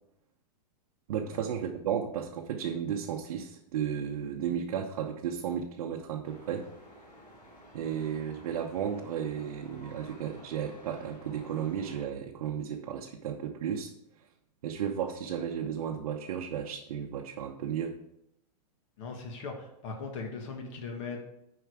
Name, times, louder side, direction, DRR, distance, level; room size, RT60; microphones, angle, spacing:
voice 1, 1.1-6.7 7.7-13.9 14.6-17.9, right 8 dB, 60° right, 0 dB, 0.9 m, -34 dB
sound 1, 6.2-12.0, equal, 25° left, 2.8 m, -52 dB
voice 2, 19.0-21.2, left 4 dB, 45° left, 3 dB, 1.5 m, -39 dB
9.3 x 4.8 x 4.8 m, 0.81 s
hypercardioid pair, 160°, 21 cm